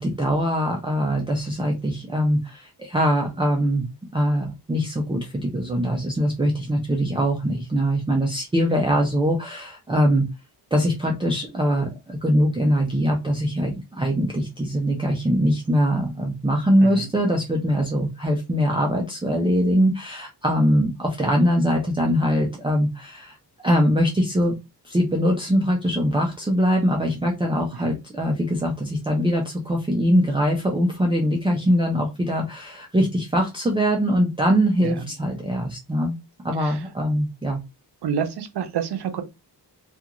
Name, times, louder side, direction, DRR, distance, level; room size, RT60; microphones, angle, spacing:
voice 1, 0.0-3.9 4.1-10.3 10.7-23.4 23.6-24.6 24.8-36.2 36.4-37.6, equal, 15° right, 0.4 m, -22 dB
voice 2, 16.8-17.1 27.7-28.0 34.8-35.0 36.6-36.9 38.0-39.2, right 7 dB, 70° right, 0.6 m, -29 dB
2.4 x 2.4 x 2.8 m
wide cardioid pair, 155°, 41 cm